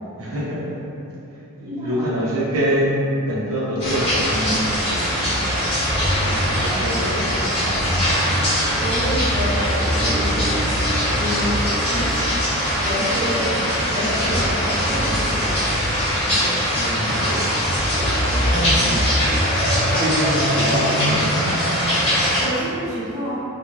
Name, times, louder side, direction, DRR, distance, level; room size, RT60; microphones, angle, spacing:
voice 1, 0.2-0.7 1.6-5.7 6.2-8.0 16.2-17.5 18.2-19.0 19.9-21.5, equal, 65° right, -6 dB, 0.5 m, -26 dB
voice 2, 1.6-2.1 8.6-10.6 11.1-12.2 12.5-15.6 22.0-23.4, equal, 15° right, -11 dB, 0.5 m, -28 dB
sound 1, 3.8-22.4, equal, 25° left, 0.8 m, -21 dB
2.5 x 2.3 x 3.0 m, 2.8 s
head